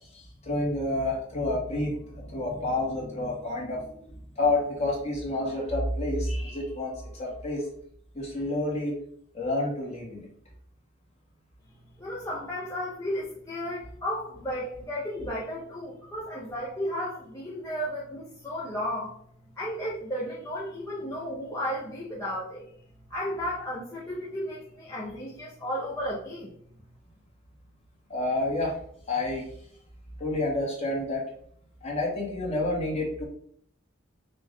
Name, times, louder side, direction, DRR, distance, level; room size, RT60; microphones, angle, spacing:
voice 1, 0.1-7.6 8.1-9.0 9.3-10.3 28.1-28.8 29.1-29.5 30.2-31.2 31.8-33.2, left 2 dB, 35° left, -3 dB, 1.6 m, -29 dB
voice 2, 12.0-19.1 19.6-22.6 23.1-26.5, equal, 15° left, -7 dB, 0.8 m, -33 dB
5.7 x 2.5 x 3.7 m, 0.63 s
head